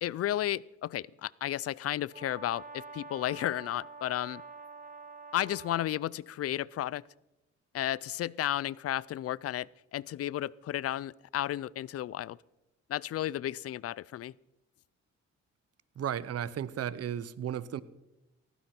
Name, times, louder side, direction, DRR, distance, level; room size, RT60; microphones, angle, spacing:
voice 1, 0.0-4.4 5.3-7.0 7.7-12.4 12.9-14.3, left 12 dB, 50° left, 24 dB, 0.4 m, -33 dB
Brass instrument, 2.1-6.0, right 3 dB, 30° right, 1.5 m, -47 dB
voice 2, 16.0-17.8, right 9 dB, 55° right, 18 dB, 0.8 m, -34 dB
18.0 x 15.0 x 4.4 m, 0.96 s
cardioid pair, 90°, 30 cm